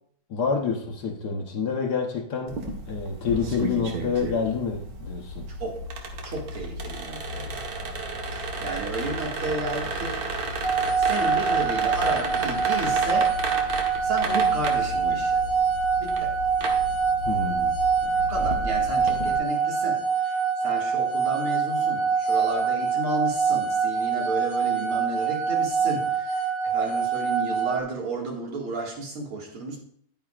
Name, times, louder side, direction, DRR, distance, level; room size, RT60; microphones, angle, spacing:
voice 1, 0.3-2.6 2.9-5.5 17.2-17.8, left 5 dB, 55° left, 3 dB, 1.4 m, -28 dB
sound 1, 2.5-19.4, right 2 dB, 50° right, 1.5 m, -33 dB
voice 2, 5.5-5.8 6.2-8.0 8.3-10.2 11.0-13.3 14.0-15.4 16.0-16.3 18.3-29.8, right 2 dB, 75° right, -1 dB, 2.9 m, -32 dB
sound 2, 10.6-27.8, right 6 dB, 75° left, 2.2 m, -25 dB
11.0 x 9.1 x 2.4 m, 0.62 s
omnidirectional pair, 2.4 m